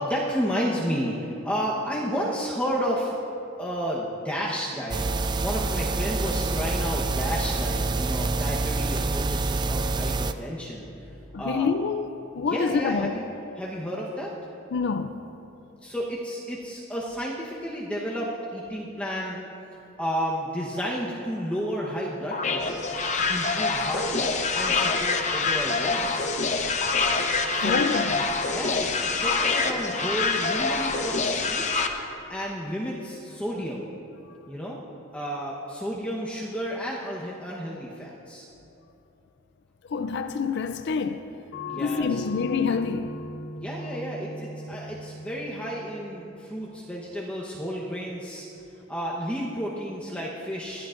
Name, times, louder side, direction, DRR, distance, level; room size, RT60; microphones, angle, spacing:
voice 1, 0.0-3.1 3.6-10.9 11.4-11.7 12.4-14.3 15.8-19.4 20.0-22.9 23.3-26.4 27.5-27.8 28.4-31.9 32.3-33.9 34.5-34.8 35.1-38.5 41.7-42.2 43.5-48.5 48.9-50.9, equal, 5° left, 1.0 m, -32 dB
sound 1, 4.9-10.3, right 3 dB, 20° right, 0.3 m, -27 dB
voice 2, 11.3-12.1 12.3-13.1 14.7-15.2 27.6-28.2 39.9-41.3 41.8-43.2, left 5 dB, 55° left, 0.4 m, -27 dB
sound 2, 22.3-31.9, left 4 dB, 35° left, 0.8 m, -25 dB
sound 3, 41.5-46.6, left 1 dB, 75° left, 1.4 m, -39 dB
21.0 x 13.0 x 2.6 m
head